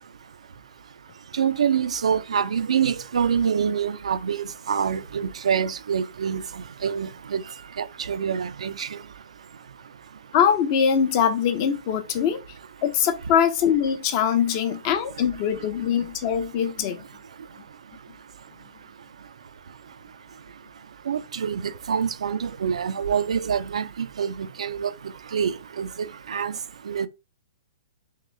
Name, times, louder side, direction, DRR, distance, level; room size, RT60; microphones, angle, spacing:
voice 1, 1.4-6.4 6.8-7.4 7.8-8.9 21.1-21.6 21.9-23.9 24.2-24.9 25.3-26.5 26.9-27.1, right 7 dB, 85° right, 0.5 m, -25 dB
voice 2, 10.3-12.4 12.8-17.0, left 8 dB, 35° left, 0.7 m, -22 dB
3.8 x 3.1 x 3.2 m
hypercardioid pair, 145°, 3 cm